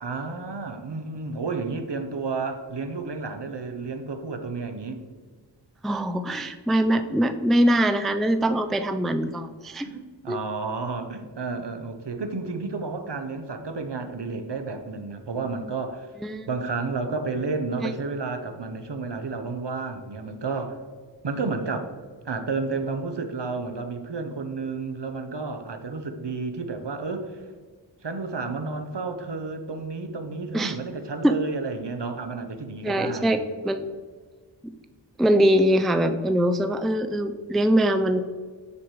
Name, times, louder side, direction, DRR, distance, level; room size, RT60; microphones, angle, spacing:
voice 1, 0.0-5.0 9.8-16.1 16.5-20.8 21.2-21.9 22.2-27.4 28.0-33.4, right 4 dB, 65° right, 7 dB, 0.8 m, -31 dB
voice 2, 5.8-9.9 10.3-10.4 16.2-16.5 17.8-17.9 30.5-30.8 31.2-31.3 32.8-33.9 34.6-34.7 35.2-38.3, equal, ahead, 9 dB, 0.4 m, -22 dB
7.0 x 4.9 x 4.7 m, 1.5 s
wide cardioid pair, 40°, 44 cm